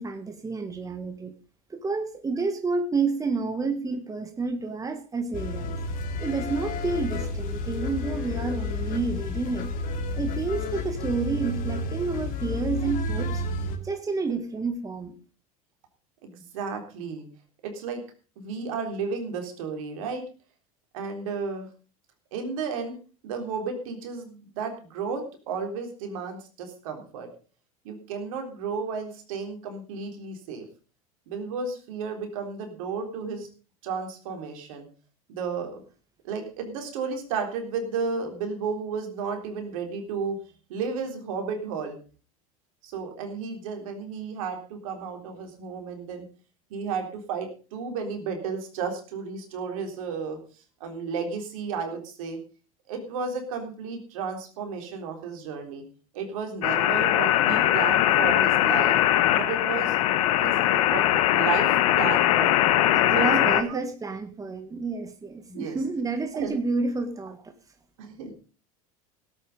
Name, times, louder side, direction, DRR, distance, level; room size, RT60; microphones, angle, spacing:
voice 1, 0.0-1.3 1.7-5.8 6.2-9.7 10.2-13.4 13.8-15.2 62.9-67.5, right 4 dB, 20° right, 7 dB, 1.8 m, -30 dB
sound 1, 5.3-13.8, left 2 dB, 50° left, 2.7 m, -31 dB
voice 2, 16.2-17.3 17.6-18.0 18.4-20.2 20.9-21.7 22.3-23.0 23.2-27.3 27.8-30.7 31.3-33.5 33.8-34.9 35.3-35.8 36.2-40.4 40.7-42.0 42.8-46.2 46.7-50.4 50.8-52.4 52.9-55.8 56.1-59.0 59.4-60.0 60.4-62.7 63.1-63.8 65.5-65.8 66.3-66.6 68.0-68.3, right 5 dB, 70° right, 5 dB, 3.7 m, -33 dB
sound 2, 56.6-63.6, left 13 dB, 70° left, 1.2 m, -21 dB
17.0 x 8.6 x 5.3 m, 0.36 s
hypercardioid pair, 80°, 18 cm